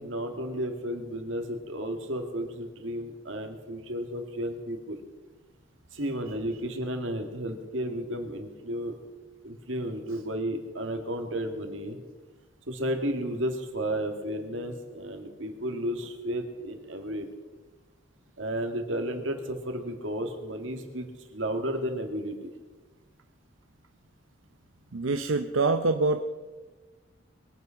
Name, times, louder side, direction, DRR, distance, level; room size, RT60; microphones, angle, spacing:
voice 1, 0.0-5.0 5.9-9.0 9.4-12.0 12.7-17.3 18.4-22.5, equal, 70° right, 5 dB, 2.2 m, -33 dB
voice 2, 24.9-26.2, right 3 dB, 85° right, 7 dB, 0.7 m, -25 dB
22.0 x 9.1 x 5.8 m, 1.3 s
head